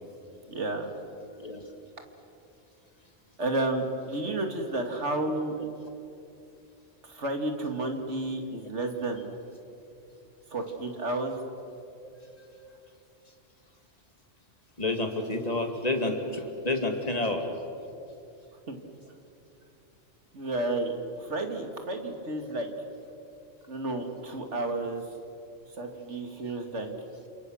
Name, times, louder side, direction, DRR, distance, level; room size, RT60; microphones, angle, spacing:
voice 1, 0.5-0.9 3.4-5.6 7.0-9.3 10.5-11.4 18.7-18.8 20.3-22.7 23.7-25.0 25.8-26.9, right 2 dB, 70° right, 4 dB, 2.6 m, -31 dB
voice 2, 14.8-17.4, left 2 dB, 30° left, 4 dB, 2.6 m, -29 dB
28.5 x 27.0 x 6.5 m, 2.7 s
omnidirectional pair, 1.3 m